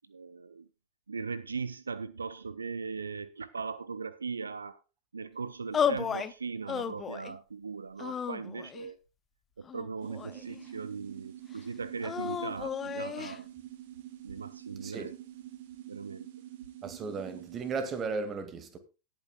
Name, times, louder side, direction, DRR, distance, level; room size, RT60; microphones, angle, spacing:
voice 1, 0.1-0.6 1.1-4.8 5.1-9.0 9.6-13.5 14.2-15.1 15.9-16.3, right 5 dB, 75° right, 0.5 m, -39 dB
sound 1, 5.7-6.3 6.7-7.4 8.0-8.9 9.6-10.6 12.0-13.4, left 8 dB, 20° left, 0.7 m, -33 dB
sound 2, 10.0-18.0, right 13 dB, 55° right, 1.7 m, -47 dB
voice 2, 16.8-18.8, right 4 dB, 25° right, 2.0 m, -35 dB
18.5 x 8.9 x 2.3 m
figure-of-eight pair, 90°, 0 cm